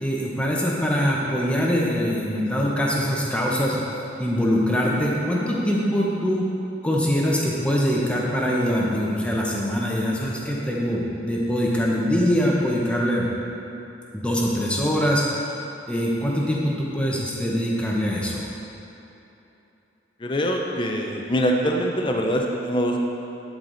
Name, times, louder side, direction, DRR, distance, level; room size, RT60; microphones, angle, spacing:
voice 1, 0.0-3.8 4.2-6.4 6.8-13.3 14.1-15.5 15.9-18.5, equal, 5° left, -4 dB, 1.0 m, -23 dB
voice 2, 20.2-23.0, equal, 25° left, 1 dB, 0.6 m, -23 dB
11.5 x 4.8 x 4.0 m, 2.9 s
head